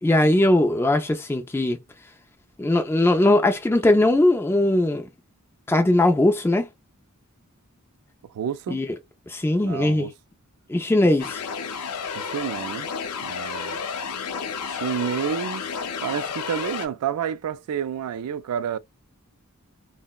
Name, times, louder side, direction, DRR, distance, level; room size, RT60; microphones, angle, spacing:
voice 1, 0.0-1.8 2.6-5.1 5.7-6.7 8.7-8.9 9.3-10.1 10.7-11.4, left 1 dB, 10° left, 0.3 m, -20 dB
voice 2, 8.3-8.8 9.6-10.1 12.1-12.9 13.2-13.8 14.7-15.6 16.0-18.8, right 8 dB, 75° right, 0.3 m, -29 dB
sound 1, 11.2-16.9, left 6 dB, 85° left, 0.5 m, -31 dB
3.7 x 2.1 x 2.2 m
head